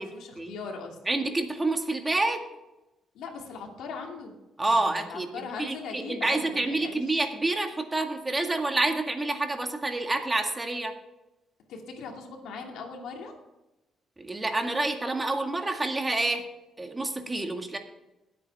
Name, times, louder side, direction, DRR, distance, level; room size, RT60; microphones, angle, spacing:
voice 1, 0.0-1.0 3.1-7.2 11.7-13.3, left 5 dB, 85° left, 2 dB, 2.4 m, -40 dB
voice 2, 1.1-2.4 4.6-5.3 5.6-10.9 14.2-16.4 16.8-17.8, right 2 dB, 20° right, 5 dB, 1.8 m, -28 dB
19.5 x 8.5 x 3.5 m, 0.99 s
cardioid pair, 90°, 0 cm